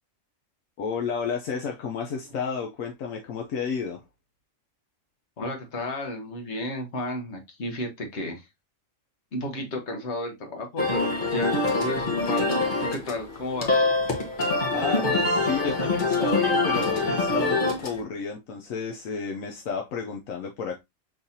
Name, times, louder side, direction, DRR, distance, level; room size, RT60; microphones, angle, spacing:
voice 1, 0.8-4.0 14.7-20.8, left 6 dB, 80° left, 1.1 m, -31 dB
voice 2, 5.4-8.5 9.3-13.9, left 1 dB, 60° left, 1.5 m, -33 dB
sound 1, 10.8-18.0, left 2 dB, 40° left, 1.2 m, -25 dB
5.7 x 3.3 x 2.7 m
omnidirectional pair, 1.4 m